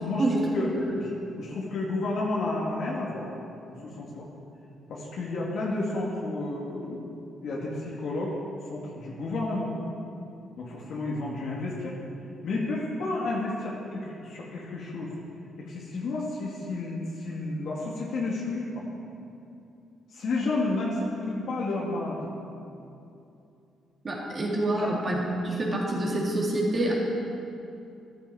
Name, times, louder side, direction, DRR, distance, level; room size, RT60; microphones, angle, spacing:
voice 1, 1.4-3.3 3.7-4.3 4.9-7.2 7.4-8.4 8.7-9.7 10.6-12.0 12.4-15.1 15.6-18.9 20.1-22.4 24.7-24.9, left 2 dB, 65° left, -4 dB, 2.0 m, -31 dB
voice 2, 24.0-26.9, right 1 dB, 40° right, -4 dB, 3.4 m, -27 dB
13.0 x 12.0 x 4.9 m, 2.7 s
cardioid pair, 90°, 0 cm